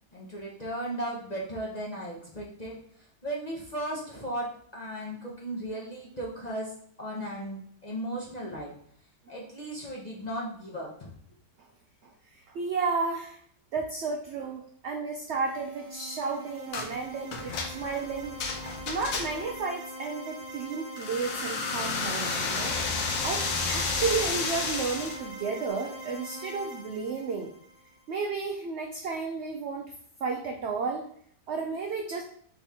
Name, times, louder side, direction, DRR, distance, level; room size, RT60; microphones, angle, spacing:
voice 1, 0.1-2.8 3.2-8.7 9.3-11.1, right 1 dB, 35° left, -4 dB, 0.7 m, -36 dB
voice 2, 12.5-13.4 13.7-18.4 18.9-22.7 23.2-27.5 28.1-29.9 30.2-31.1 31.5-32.2, right 4 dB, 75° right, 2 dB, 0.6 m, -32 dB
sound 1, 15.4-28.2, right 1 dB, 35° right, 0.9 m, -43 dB
sound 2, 16.7-16.9 17.3-19.6 21.0-25.2, left 4 dB, 75° left, 1.2 m, -31 dB
4.1 x 3.4 x 3.5 m, 0.62 s
omnidirectional pair, 1.7 m